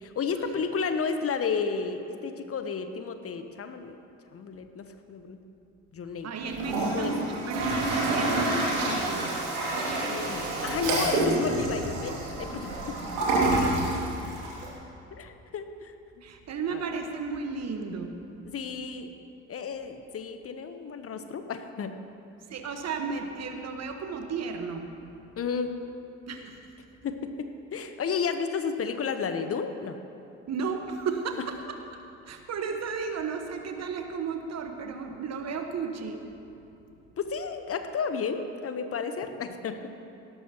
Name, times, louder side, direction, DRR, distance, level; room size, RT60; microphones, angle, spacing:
voice 1, 0.0-3.9 4.3-5.4 5.9-6.3 6.8-7.1 10.1-12.9 15.1-15.9 16.7-16.8 18.4-19.1 19.5-22.0 25.4-25.7 27.0-30.0 37.2-39.9, left 5 dB, 40° left, 8 dB, 1.0 m, -32 dB
voice 2, 6.2-9.4 13.6-13.9 16.2-18.2 22.5-24.9 26.3-26.6 30.5-31.4 31.7-31.8 32.3-36.2, right 5 dB, 45° right, 5 dB, 1.4 m, -34 dB
Toilet flush, 6.5-14.7, right 2 dB, 75° right, 2.6 m, -28 dB
17.5 x 12.5 x 3.0 m, 2.8 s
hypercardioid pair, 55°, 36 cm